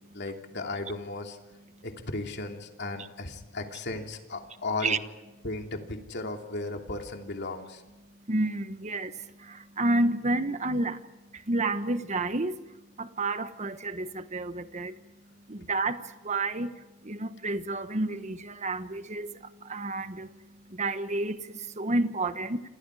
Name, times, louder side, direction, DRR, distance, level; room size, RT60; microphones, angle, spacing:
voice 1, 0.1-1.4 1.8-5.0 5.4-7.8, left 2 dB, 60° left, 3.0 m, -35 dB
voice 2, 8.3-9.1 9.4-11.0 11.5-12.6 13.0-14.9 15.5-16.0 16.2-16.7 17.0-19.3 19.6-20.3 20.7-22.6, right 2 dB, 35° right, 1.3 m, -30 dB
28.5 x 27.5 x 4.9 m
head